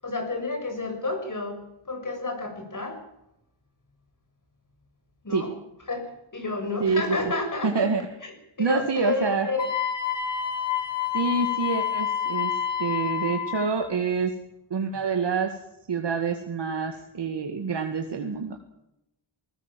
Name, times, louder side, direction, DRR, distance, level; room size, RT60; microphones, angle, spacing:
voice 1, 0.0-1.6 1.9-3.0 5.2-5.5 5.9-7.9 8.2-8.3 8.6-9.7, left 3 dB, 40° left, 5 dB, 7.2 m, -30 dB
voice 2, 7.6-8.0 8.6-9.5 11.1-12.5 12.8-14.3 14.7-15.6 15.9-18.6, right 5 dB, 60° right, 4 dB, 2.1 m, -26 dB
Wind instrument woodwind instrument, 9.6-13.7, left 8 dB, 65° left, 7.0 m, -28 dB
20.5 x 19.0 x 7.6 m, 0.87 s
wide cardioid pair, 95°, 47 cm